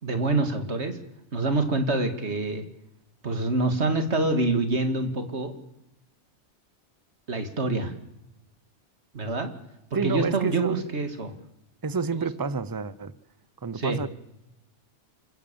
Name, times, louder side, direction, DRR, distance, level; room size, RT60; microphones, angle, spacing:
voice 1, 0.0-1.0 1.3-2.6 3.2-5.5 7.3-7.9 9.1-9.5 9.9-11.3 12.1-12.3 13.7-14.0, right 2 dB, 70° right, 7 dB, 2.6 m, -26 dB
voice 2, 9.9-10.8 11.8-13.1 13.6-14.1, right 4 dB, 20° right, 16 dB, 0.7 m, -29 dB
27.5 x 16.5 x 7.1 m, 0.89 s
omnidirectional pair, 1.2 m